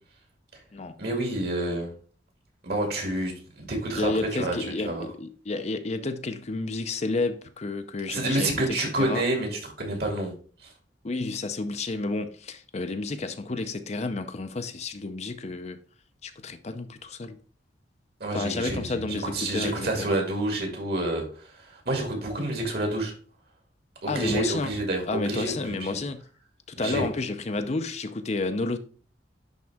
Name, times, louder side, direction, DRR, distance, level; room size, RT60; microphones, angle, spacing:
voice 1, 1.0-1.9 2.6-4.6 4.8-5.1 8.1-10.3 18.2-23.1 24.0-26.0 26.8-27.1, right 1 dB, 60° right, 2.4 m, -29 dB
voice 2, 4.0-9.2 11.0-15.8 16.2-17.4 18.3-20.2 24.1-24.7 25.1-26.2 26.7-28.8, left 3 dB, 35° left, 0.5 m, -31 dB
10.5 x 3.7 x 3.5 m
head